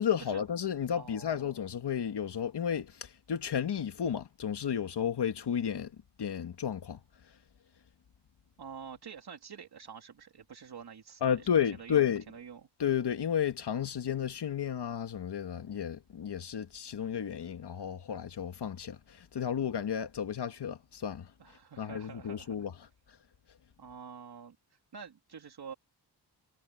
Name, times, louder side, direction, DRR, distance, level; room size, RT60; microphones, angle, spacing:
voice 1, 0.0-7.0 11.2-12.2 12.8-21.3 21.8-22.7, left 8 dB, 70° left, 1.8 m, -32 dB
voice 2, 0.9-1.5 8.6-11.5 11.8-12.7 21.4-22.7 23.8-25.7, right 7 dB, 60° right, 3.1 m, -47 dB
wide cardioid pair, 135°, 43 cm